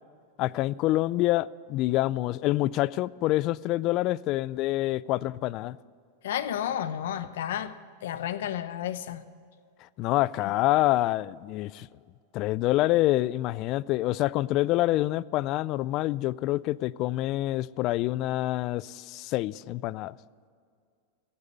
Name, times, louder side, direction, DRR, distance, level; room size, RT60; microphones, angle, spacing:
voice 1, 0.4-5.8 10.0-11.9 12.3-20.2, left 16 dB, 45° left, 0.3 m, -26 dB
voice 2, 6.2-7.7 8.0-9.2, left 10 dB, 75° left, 0.8 m, -31 dB
12.0 x 8.8 x 9.4 m
hypercardioid pair, 125°, 0 cm